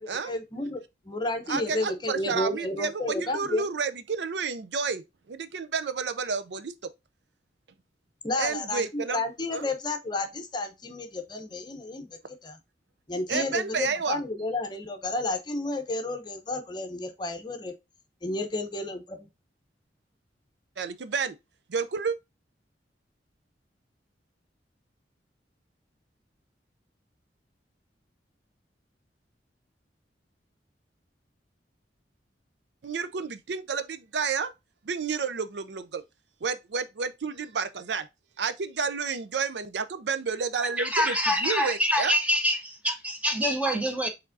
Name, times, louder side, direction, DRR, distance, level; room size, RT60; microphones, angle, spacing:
voice 1, 0.0-3.6 8.2-12.6 13.1-17.7 18.2-19.3, left 2 dB, 25° left, 0.8 m, -31 dB
voice 2, 1.5-5.0 5.3-6.7 8.4-9.2 9.5-9.7 13.3-14.2 20.8-21.4 21.7-22.2 32.8-34.5 34.9-36.0 36.4-38.1 38.4-41.2 41.4-42.1, right 5 dB, 75° right, 0.5 m, -30 dB
voice 3, 40.6-44.1, equal, 10° right, 0.9 m, -26 dB
4.6 x 3.6 x 2.6 m
head